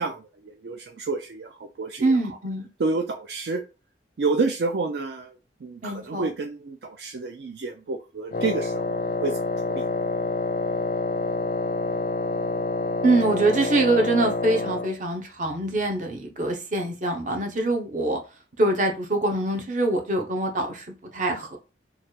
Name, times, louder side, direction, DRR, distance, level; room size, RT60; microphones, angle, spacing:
voice 1, 0.0-2.2 2.8-3.6 4.2-9.4 9.7-9.9, right 3 dB, 65° right, 4 dB, 0.4 m, -29 dB
voice 2, 2.0-2.7 5.8-6.3 13.0-18.2 18.6-21.6, right 2 dB, 45° right, 3 dB, 0.8 m, -24 dB
Wind instrument woodwind instrument, 8.3-15.0, left 2 dB, 45° left, 0.4 m, -27 dB
3.2 x 2.4 x 4.4 m, 0.30 s
head